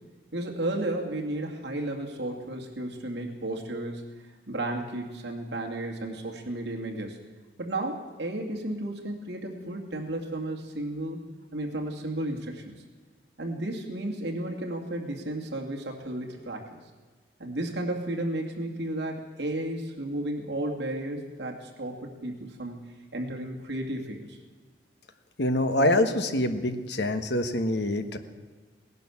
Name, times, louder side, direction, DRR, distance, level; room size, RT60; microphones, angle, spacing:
voice 1, 0.3-4.0 4.5-7.2 7.6-11.2 11.5-12.8 13.4-16.8 17.4-22.8 23.1-24.4, right 1 dB, 65° right, 1 dB, 2.4 m, -33 dB
voice 2, 25.4-28.2, left 1 dB, 65° left, 8 dB, 1.2 m, -25 dB
18.0 x 11.0 x 7.1 m, 1.4 s
head